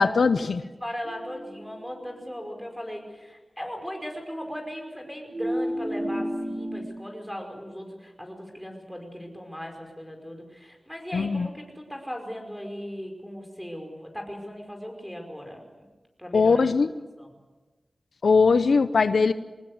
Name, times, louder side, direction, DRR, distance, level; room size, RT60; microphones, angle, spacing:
voice 1, 0.0-0.6 11.1-11.5 16.3-16.9 18.2-19.3, left 4 dB, 90° left, 12 dB, 0.8 m, -20 dB
voice 2, 0.6-15.9 16.2-16.6 17.2-17.3, equal, 5° left, 2 dB, 5.2 m, -38 dB
sound 1, 1.0-2.4 5.3-6.8, equal, 50° right, 4.3 m, -32 dB
24.0 x 20.0 x 8.1 m, 1.2 s
wide cardioid pair, 95°, 0 cm